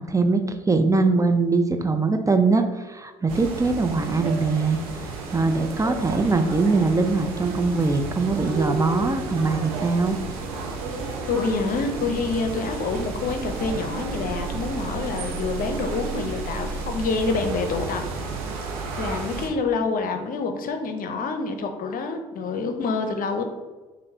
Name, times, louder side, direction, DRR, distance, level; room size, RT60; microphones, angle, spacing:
voice 1, 0.0-10.2, right 3 dB, 20° right, 7 dB, 0.4 m, -22 dB
sound 1, 3.3-19.5, right 3 dB, 80° right, 0.7 m, -32 dB
voice 2, 11.3-18.0 19.0-23.5, left 4 dB, 50° left, 6 dB, 0.7 m, -27 dB
6.4 x 2.6 x 2.8 m, 1.3 s
hypercardioid pair, 55°, 18 cm